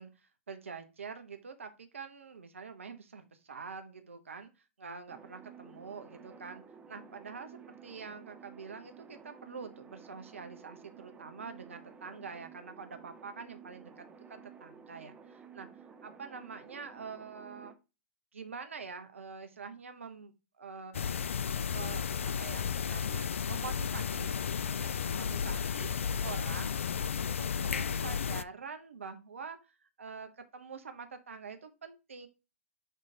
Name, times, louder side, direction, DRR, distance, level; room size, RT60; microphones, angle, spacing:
voice 1, 0.0-17.7 18.3-21.3 21.7-24.4 24.7-26.7 27.0-32.3, right 5 dB, 80° right, 7 dB, 1.0 m, -46 dB
sound 1, 5.1-17.7, right 6 dB, 15° right, 0.9 m, -53 dB
sound 2, 20.9-28.4, left 7 dB, 75° left, 0.4 m, -33 dB
6.5 x 3.2 x 5.1 m, 0.29 s
hypercardioid pair, 115°, 7 cm